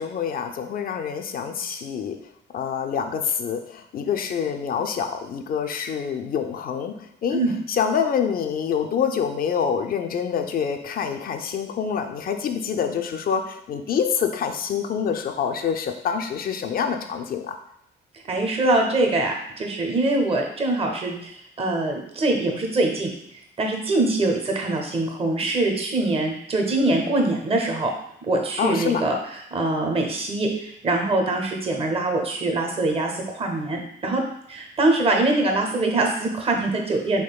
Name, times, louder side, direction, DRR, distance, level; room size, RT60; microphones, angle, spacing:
voice 1, 0.0-2.2 2.5-6.9 7.2-7.4 7.7-17.6 28.6-29.0, left 7 dB, 50° left, 6 dB, 0.4 m, -26 dB
voice 2, 18.3-23.1 23.6-27.9 28.2-29.1 29.5-34.2 34.5-37.2, right 2 dB, 30° right, 2 dB, 0.6 m, -23 dB
3.6 x 3.1 x 2.3 m, 0.74 s
cardioid pair, 90°, 20 cm